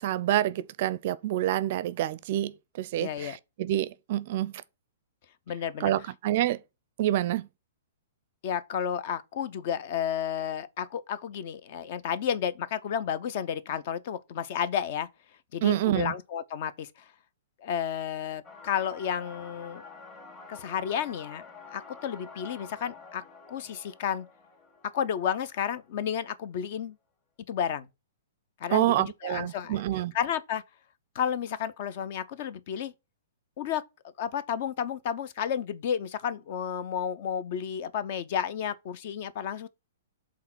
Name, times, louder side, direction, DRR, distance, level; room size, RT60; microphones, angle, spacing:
voice 1, 0.0-4.5 5.8-6.6 7.0-7.5 15.6-16.1 28.7-30.1, right 13 dB, 50° right, 0.4 m, -27 dB
voice 2, 3.0-3.4 5.5-5.9 8.4-15.1 15.5-16.9 17.6-19.8 20.5-21.4 21.7-24.3 24.8-27.0 27.5-27.9 28.6-29.8 30.1-30.6 31.1-32.9 33.6-33.8 34.2-39.7, left 8 dB, 50° left, 0.6 m, -32 dB
sound 1, 18.4-26.0, left 4 dB, 30° left, 1.9 m, -49 dB
5.6 x 3.8 x 6.1 m
figure-of-eight pair, 110°, 0 cm